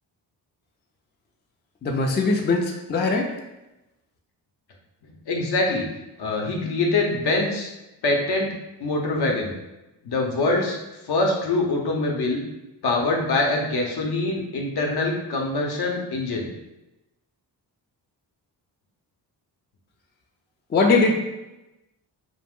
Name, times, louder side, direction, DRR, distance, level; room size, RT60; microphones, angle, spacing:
voice 1, 1.8-3.3 20.7-21.3, left 3 dB, 25° left, 1 dB, 0.4 m, -21 dB
voice 2, 5.3-5.8 6.2-7.7 8.0-8.5 8.8-9.5 10.0-10.8 11.1-12.4 12.8-16.5, left 2 dB, 60° left, 0 dB, 0.7 m, -24 dB
2.4 x 2.0 x 3.5 m, 0.97 s
cardioid pair, 65°, 43 cm